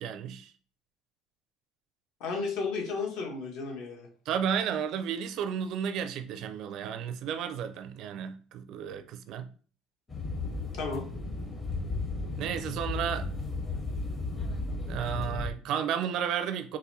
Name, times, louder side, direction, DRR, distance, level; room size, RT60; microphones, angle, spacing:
voice 1, 0.0-0.5 4.3-9.5 12.4-13.3 14.9-16.8, right 8 dB, 50° right, 0.4 m, -32 dB
voice 2, 2.2-4.1 10.7-11.0, left 4 dB, 65° left, 1.3 m, -33 dB
sound 1, 10.1-15.5, left 2 dB, 15° left, 0.7 m, -34 dB
4.0 x 2.5 x 4.1 m
cardioid pair, 165°, 0 cm